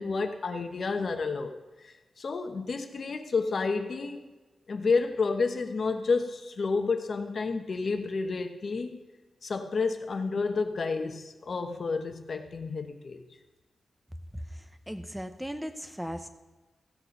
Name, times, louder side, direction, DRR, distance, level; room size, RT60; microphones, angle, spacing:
voice 1, 0.0-1.5 1.8-4.2 4.7-9.0 9.4-13.2, left 4 dB, 45° left, 5 dB, 1.0 m, -30 dB
voice 2, 14.3-16.3, equal, 5° right, 8 dB, 0.9 m, -38 dB
15.5 x 6.7 x 5.3 m, 1.2 s
wide cardioid pair, 135°, 0 cm